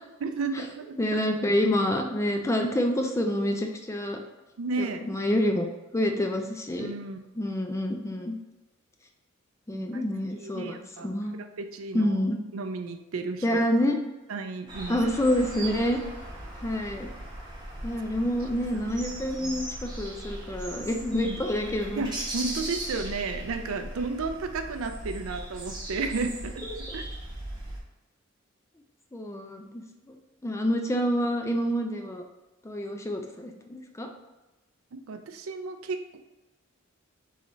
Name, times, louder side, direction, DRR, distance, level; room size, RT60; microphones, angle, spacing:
voice 1, 0.2-1.2 4.6-5.1 6.8-7.2 9.7-10.0 10.4-11.1 11.4-12.1 12.5-13.6 14.3-15.0 19.4-19.6 21.2-21.4 22.0-26.6 26.9-27.0 34.9-36.2, right 4 dB, 90° right, 7 dB, 0.4 m, -33 dB
voice 2, 1.0-4.2 4.8-5.7 5.9-6.9 7.3-8.4 9.7-11.4 11.9-12.4 13.4-14.0 14.9-16.0 16.6-17.1 17.8-22.1 26.6-27.0 29.1-30.2 30.4-32.2 32.6-34.1, left 1 dB, 15° left, 3 dB, 0.4 m, -27 dB
sound 1, 14.7-27.8, right 1 dB, 20° right, 1.0 m, -38 dB
3.8 x 3.2 x 3.9 m, 1.1 s
head